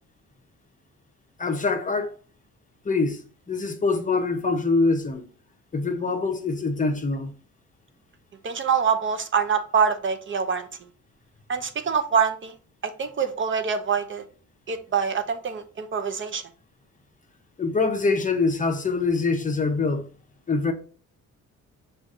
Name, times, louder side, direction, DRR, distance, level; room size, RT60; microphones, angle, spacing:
voice 1, 1.4-2.1 2.8-5.3 5.7-7.3 17.6-20.1 20.5-20.7, left 3 dB, 25° left, 0.7 m, -24 dB
voice 2, 8.4-10.7 11.5-12.5 13.0-14.2 14.7-16.4, right 6 dB, 40° right, 0.6 m, -25 dB
5.0 x 2.5 x 3.7 m
cardioid pair, 90°, 30 cm